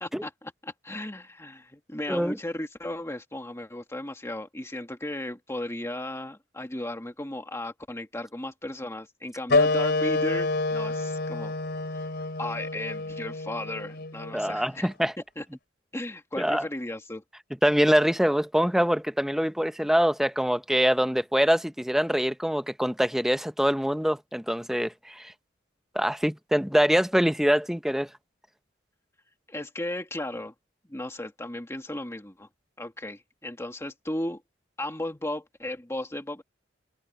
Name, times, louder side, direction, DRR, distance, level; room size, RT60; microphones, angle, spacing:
voice 1, 0.0-11.5 12.4-14.9 15.4-15.5 15.9-17.2 29.5-30.5 30.9-32.5 32.8-34.4 34.8-36.4, left 1 dB, 15° left, 2.0 m, -35 dB
sound 1, 9.5-14.6, left 3 dB, 60° left, 4.0 m, -28 dB
voice 2, 14.3-15.1 16.4-16.6 17.6-25.3 25.9-28.1, equal, ahead, 0.8 m, -24 dB
head